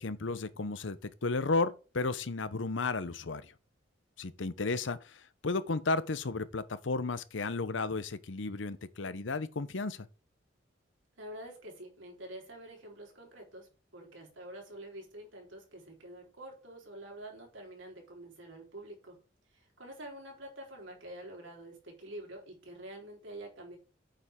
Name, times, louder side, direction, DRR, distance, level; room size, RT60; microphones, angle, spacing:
voice 1, 0.0-3.5 4.2-10.1, left 3 dB, 75° left, 0.8 m, -33 dB
voice 2, 11.2-19.2 19.5-23.8, right 1 dB, 85° right, 4.0 m, -47 dB
9.3 x 6.9 x 3.7 m
head